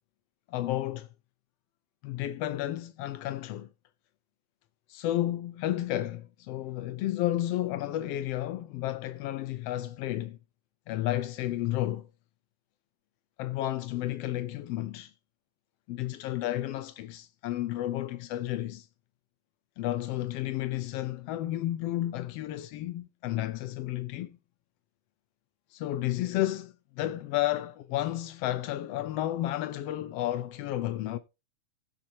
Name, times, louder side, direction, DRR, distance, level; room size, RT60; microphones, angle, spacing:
voice 1, 0.5-1.1 2.0-3.7 4.9-10.4 10.9-12.1 13.4-15.1 15.9-18.9 19.8-24.4 25.7-31.2, left 14 dB, 85° left, 1.3 m, -32 dB
16.5 x 7.4 x 2.8 m
omnidirectional pair, 3.5 m